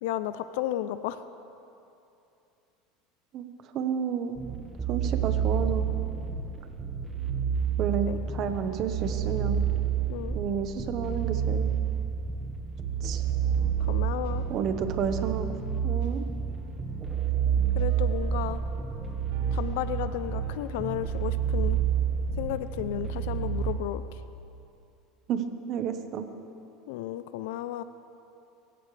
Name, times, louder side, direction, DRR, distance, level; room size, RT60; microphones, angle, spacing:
voice 1, 0.0-1.2 8.1-8.2 10.1-10.4 13.8-14.4 17.7-18.6 19.5-21.8 22.4-24.2 26.9-27.8, left 13 dB, 75° left, 12 dB, 0.5 m, -33 dB
voice 2, 3.7-4.4 4.9-5.9 7.8-9.6 10.3-11.7 13.0-13.2 14.5-15.5 15.8-16.2 25.3-25.4 25.7-26.3, right 7 dB, 50° right, 8 dB, 1.2 m, -30 dB
sound 1, 4.4-23.7, right 8 dB, 25° right, 1.4 m, -29 dB
sound 2, 13.4-20.7, right 4 dB, 90° right, 2.7 m, -48 dB
24.0 x 15.5 x 3.4 m, 2.7 s
supercardioid pair, 120°, 0 cm